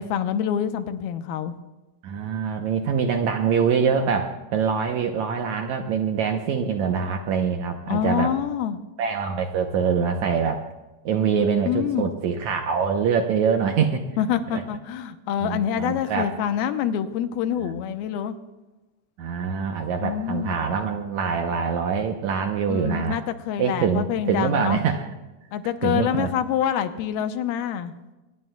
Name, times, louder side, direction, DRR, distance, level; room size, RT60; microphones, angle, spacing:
voice 1, 0.0-1.5 7.9-8.8 11.4-12.1 14.2-18.4 20.0-20.6 22.7-24.8 25.5-27.9, left 9 dB, 85° left, 9 dB, 2.7 m, -26 dB
voice 2, 2.0-8.3 9.0-10.6 11.1-14.1 14.5-14.6 15.4-16.3 17.6-17.9 19.2-23.2 23.6-25.1 25.8-26.3, right 6 dB, 70° right, 4 dB, 1.8 m, -24 dB
24.0 x 19.5 x 2.3 m, 1.1 s
omnidirectional pair, 4.3 m